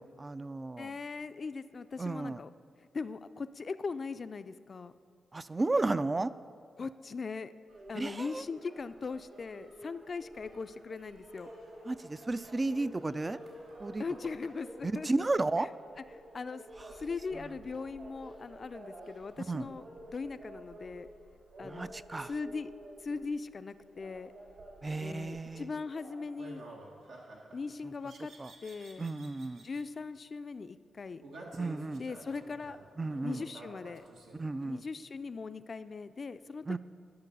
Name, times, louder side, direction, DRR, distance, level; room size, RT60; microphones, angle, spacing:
voice 1, 0.0-0.9 2.0-2.4 5.3-6.3 7.9-8.4 11.9-13.4 13.8-14.0 14.8-15.7 17.4-17.5 19.4-19.7 21.6-22.3 24.8-25.7 27.8-27.9 28.4-28.5 29.0-29.6 31.5-32.0 33.0-33.4 34.3-34.8 36.7-36.8, right 2 dB, 30° right, 15 dB, 0.3 m, -33 dB
voice 2, 0.8-2.5 2.9-4.9 6.8-7.5 7.9-11.5 14.0-15.1 15.6-15.7 16.3-16.6 17.0-21.1 21.6-21.9 22.3-22.7 23.0-24.3 25.0-26.7 27.5-28.3 28.6-29.1 29.6-31.2 32.0-32.8 33.2-34.0 34.6-36.8, left 4 dB, 50° left, 12 dB, 0.4 m, -40 dB
sound 1, 7.7-26.3, right 1 dB, 70° right, 2.8 m, -51 dB
sound 2, 25.3-25.6 26.4-27.6 28.0-29.8 31.2-34.7, right 2 dB, 85° right, 1.3 m, -50 dB
10.5 x 6.7 x 5.4 m, 2.2 s
cardioid pair, 55°, 0 cm